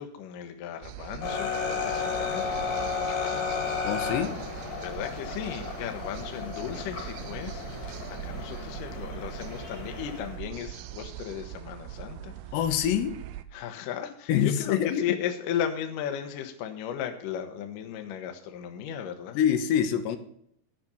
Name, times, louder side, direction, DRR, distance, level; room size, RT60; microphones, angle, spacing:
voice 1, 0.0-3.6 4.8-7.7 8.1-12.3 13.5-19.4, left 9 dB, 70° left, 6 dB, 2.2 m, -36 dB
sound 1, 0.8-13.4, right 12 dB, 80° right, 2.4 m, -41 dB
sound 2, 1.2-10.4, left 5 dB, 50° left, 2.5 m, -33 dB
voice 2, 3.8-4.3 12.5-13.2 14.3-15.2 19.4-20.2, left 9 dB, 85° left, 9 dB, 3.0 m, -25 dB
12.0 x 6.0 x 6.9 m, 0.69 s
omnidirectional pair, 4.8 m